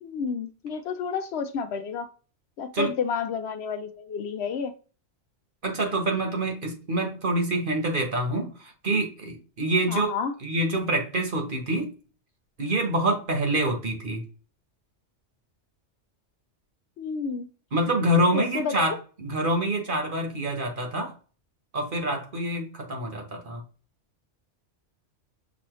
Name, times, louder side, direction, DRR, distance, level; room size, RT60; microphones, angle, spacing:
voice 1, 0.0-2.1 2.6-4.7 9.9-10.3 17.0-17.5 18.3-19.0, left 6 dB, 70° left, 9 dB, 0.8 m, -30 dB
voice 2, 5.6-10.1 10.4-11.9 12.6-14.2 17.7-21.1 21.7-23.6, right 1 dB, 50° right, 3 dB, 1.2 m, -26 dB
6.2 x 2.8 x 3.0 m, 0.37 s
omnidirectional pair, 1.2 m